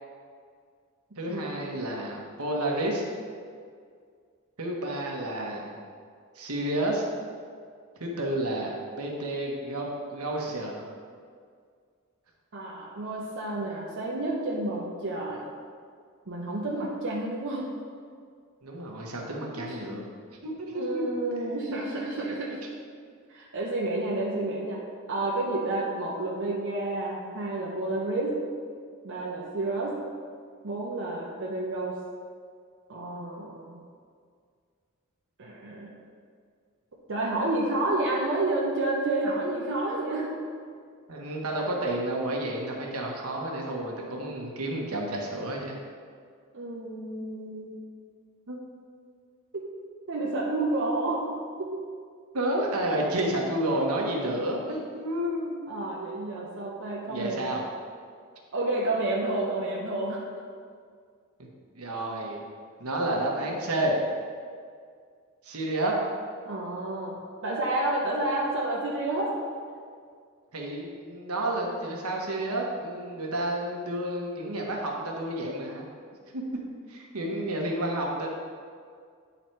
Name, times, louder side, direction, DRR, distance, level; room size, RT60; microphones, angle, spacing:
voice 1, 1.2-3.0 4.6-5.8 6.3-7.0 8.0-10.9 18.6-20.0 20.4-21.0 41.1-45.8 48.5-48.6 52.3-55.7 57.1-57.6 61.4-61.5 61.7-62.4 62.8-63.9 65.4-66.0 70.5-75.8 76.3-76.4 76.9-78.3, right 1 dB, 80° right, -1 dB, 1.2 m, -30 dB
voice 2, 12.5-15.5 16.3-17.7 19.5-19.8 20.7-22.6 23.3-24.8 25.1-28.3 29.0-29.9 30.6-32.0 32.9-33.8 35.4-35.9 37.1-40.3 46.5-47.8 50.1-51.3 51.6-51.8 55.7-57.5 58.5-60.2 66.4-69.3, right 2 dB, 60° right, -4 dB, 0.9 m, -30 dB
9.2 x 4.0 x 4.5 m, 2.1 s
head